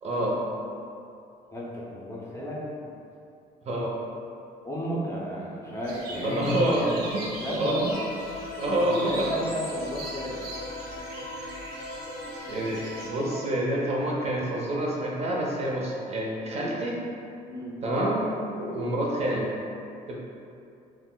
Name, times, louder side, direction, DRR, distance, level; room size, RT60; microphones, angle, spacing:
voice 1, 0.0-0.4 3.7-3.9 6.2-7.2 7.6-7.8 8.6-9.3 12.5-12.8 13.1-17.0 17.8-18.2 18.6-19.5 20.1-20.2, right 1 dB, 40° right, -3 dB, 0.5 m, -27 dB
voice 2, 1.5-2.9 4.6-6.9 7.3-8.0 8.8-10.4 16.5-16.8 17.5-17.8, equal, 15° left, -6 dB, 0.5 m, -33 dB
sound 1, 5.8-13.1, right 2 dB, 85° right, 0.7 m, -40 dB
sound 2, 7.9-13.5, left 1 dB, 60° left, 0.6 m, -38 dB
2.4 x 2.1 x 3.7 m, 2.6 s
cardioid pair, 110°, 17 cm